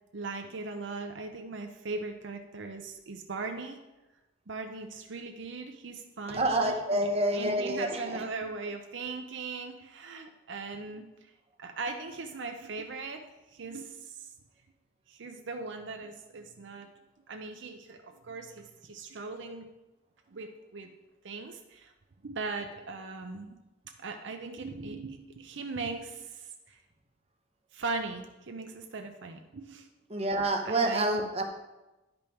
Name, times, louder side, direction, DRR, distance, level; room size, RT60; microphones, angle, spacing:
voice 1, 0.1-3.8 4.5-7.1 7.3-11.1 11.6-13.2 13.5-14.1 15.1-16.9 17.3-19.7 20.3-20.9 21.2-21.9 22.2-23.6 24.0-26.8 27.7-29.9 30.6-31.3, right 3 dB, 65° right, 5 dB, 0.6 m, -39 dB
voice 2, 6.3-8.2 30.1-31.5, right 1 dB, 30° right, 3 dB, 0.9 m, -28 dB
10.5 x 5.3 x 4.5 m, 1.0 s
head